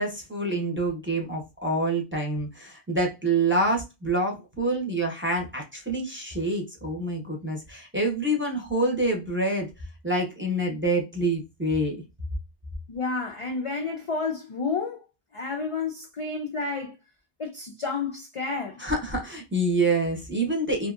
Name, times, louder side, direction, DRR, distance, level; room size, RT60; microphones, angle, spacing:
voice 1, 0.0-9.7 10.0-12.0 18.8-20.9, right 2 dB, 15° right, 0.7 m, -27 dB
voice 2, 12.9-15.0 15.3-17.0 17.4-18.8, left 4 dB, 60° left, 0.3 m, -30 dB
2.7 x 2.6 x 2.4 m
omnidirectional pair, 1.1 m